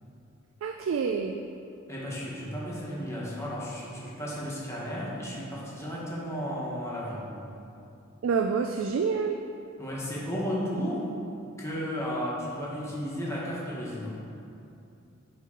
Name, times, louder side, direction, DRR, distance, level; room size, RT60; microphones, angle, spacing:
voice 1, 0.6-1.4 8.2-9.4, right 5 dB, 70° right, 5 dB, 0.3 m, -27 dB
voice 2, 1.9-7.3 9.8-11.1 11.6-14.2, equal, 15° left, -6 dB, 1.2 m, -34 dB
10.5 x 3.7 x 3.8 m, 2.7 s
head